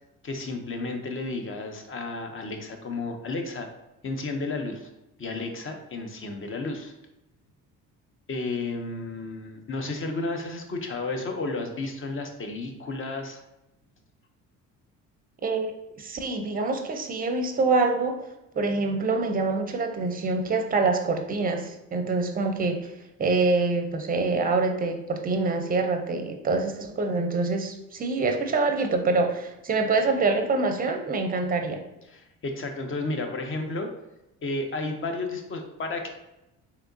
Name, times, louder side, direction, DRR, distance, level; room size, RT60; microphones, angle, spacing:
voice 1, 0.2-3.7 4.0-4.9 5.2-6.9 8.3-13.4 32.1-33.9 34.4-36.1, left 3 dB, 35° left, 5 dB, 0.6 m, -32 dB
voice 2, 16.0-18.2 18.5-22.8 23.2-31.8, right 3 dB, 25° right, 5 dB, 0.5 m, -25 dB
3.4 x 2.8 x 2.6 m, 0.92 s
supercardioid pair, 65°, 37 cm